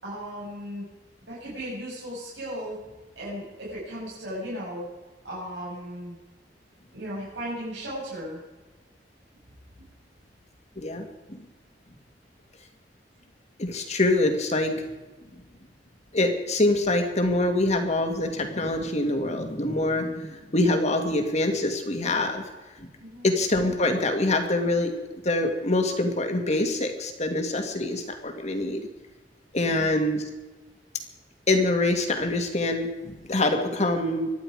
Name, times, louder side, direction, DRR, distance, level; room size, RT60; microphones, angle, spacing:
voice 1, 0.0-0.8 1.3-2.8 3.2-4.9 5.2-6.2 6.9-8.4 23.0-23.3 29.6-30.1, equal, 80° right, -7 dB, 7.1 m, -36 dB
voice 2, 10.8-11.4 13.6-14.8 16.1-22.4 22.8-22.9 23.2-24.9 25.2-28.8 29.5-30.2 31.5-34.3, left 2 dB, 40° left, 5 dB, 2.2 m, -25 dB
24.5 x 10.5 x 5.0 m, 1.2 s
head